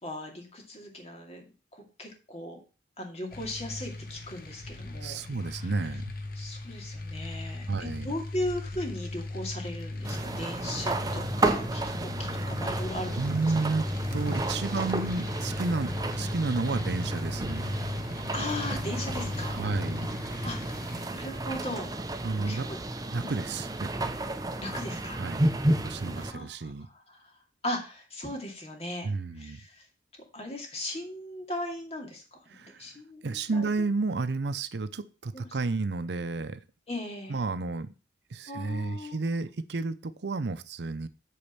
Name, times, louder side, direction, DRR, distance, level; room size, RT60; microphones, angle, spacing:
voice 1, 0.0-2.6 3.0-5.2 5.5-5.7 6.4-13.4 18.3-19.6 20.4-21.9 22.5-22.8 23.2-23.4 24.6-25.2 26.1-27.3 27.6-29.1 29.4-29.8 30.3-32.4 32.8-33.7 35.3-35.5 36.9-37.3 38.5-39.1, left 1 dB, 35° left, 2 dB, 2.3 m, -38 dB
sound 1, 3.3-21.1, left 2 dB, 50° left, 1.2 m, -37 dB
voice 2, 5.0-6.1 7.7-8.1 13.2-17.8 19.5-20.2 22.2-22.7 23.1-24.2 25.2-25.5 25.8-26.9 29.0-29.6 32.5-32.8 33.2-36.6 37.3-37.9 38.3-41.1, right 3 dB, 65° right, 13 dB, 0.6 m, -31 dB
sound 2, 10.0-26.3, right 2 dB, 20° right, 0.7 m, -32 dB
8.5 x 4.2 x 7.1 m, 0.33 s
head